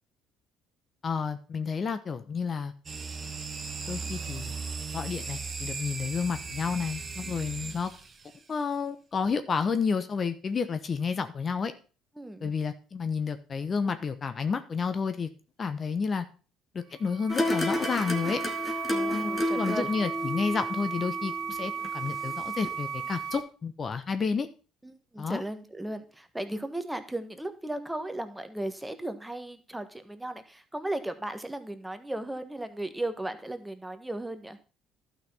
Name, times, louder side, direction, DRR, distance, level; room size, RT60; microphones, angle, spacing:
voice 1, 1.0-2.7 3.9-4.5 4.9-7.9 8.5-11.7 12.4-15.3 15.6-16.2 16.7-18.4 19.1-24.5 25.2-25.4, left 5 dB, 40° left, 10 dB, 1.0 m, -30 dB
sound 1, 2.9-8.4, right 5 dB, 35° right, 1.5 m, -37 dB
voice 2, 7.2-7.8 12.2-12.5 18.9-19.9 24.8-34.6, right 1 dB, 10° right, 9 dB, 1.4 m, -36 dB
sound 2, 16.9-23.4, right 6 dB, 75° right, 1.4 m, -35 dB
sound 3, 17.3-22.4 22.6-22.7, left 1 dB, 25° left, 2.1 m, -32 dB
12.0 x 5.9 x 5.6 m, 0.36 s
hypercardioid pair, 65°, 0 cm